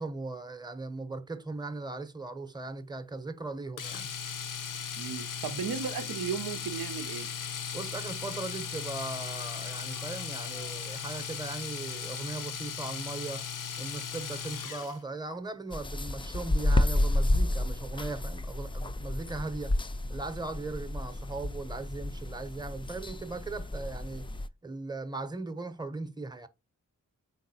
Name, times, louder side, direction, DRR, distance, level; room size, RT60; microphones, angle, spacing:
voice 1, 0.0-4.1 7.7-13.5 13.8-19.8 20.1-24.3 24.6-26.5, right 3 dB, 10° right, 0.7 m, -38 dB
Domestic sounds home sounds, 3.8-15.0 17.1-17.3 17.6-17.7, left 7 dB, 65° left, 0.6 m, -37 dB
voice 2, 5.0-7.3, right 7 dB, 90° right, 0.5 m, -35 dB
sound 1, 9.2-15.2, left 3 dB, 90° left, 1.0 m, -60 dB
sound 2, 15.7-24.5, left 1 dB, 15° left, 0.3 m, -31 dB
4.1 x 3.9 x 2.6 m
cardioid pair, 40°, 34 cm